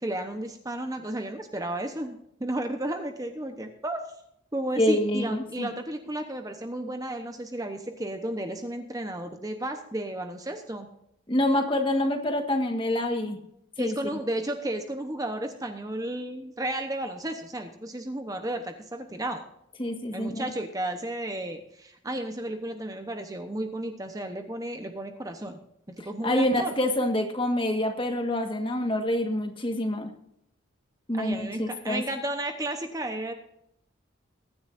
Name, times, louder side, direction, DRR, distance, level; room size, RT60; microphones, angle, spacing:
voice 1, 0.0-4.0 4.5-10.9 13.8-19.4 20.1-25.6 26.0-26.7 31.2-33.3, right 1 dB, 15° right, 5 dB, 1.0 m, -33 dB
voice 2, 4.8-5.7 11.3-13.4 13.8-13.9 19.8-20.5 26.2-30.1 31.1-32.0, left 1 dB, 25° left, 5 dB, 1.6 m, -26 dB
22.5 x 10.0 x 2.6 m, 0.75 s
head